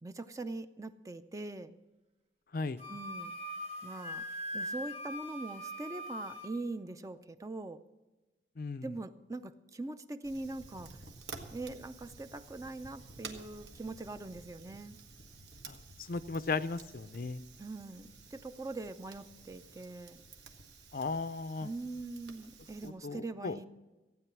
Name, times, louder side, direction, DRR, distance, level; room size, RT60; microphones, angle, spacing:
voice 1, 0.0-1.7 2.9-3.3 3.8-4.2 4.5-7.8 8.8-10.9 11.5-15.0 17.6-20.2 21.6-23.6, right 2 dB, 20° right, 11 dB, 0.5 m, -42 dB
Wind instrument woodwind instrument, 2.8-6.5, equal, 35° right, 2.1 m, -41 dB
voice 2, 8.6-8.9 15.7-15.8 16.1-17.4 20.9-21.7 22.8-23.6, left 4 dB, 55° left, 13 dB, 0.5 m, -36 dB
Fire, 10.2-22.9, right 4 dB, 75° right, 1.3 m, -52 dB
15.5 x 9.2 x 6.0 m, 1.1 s
head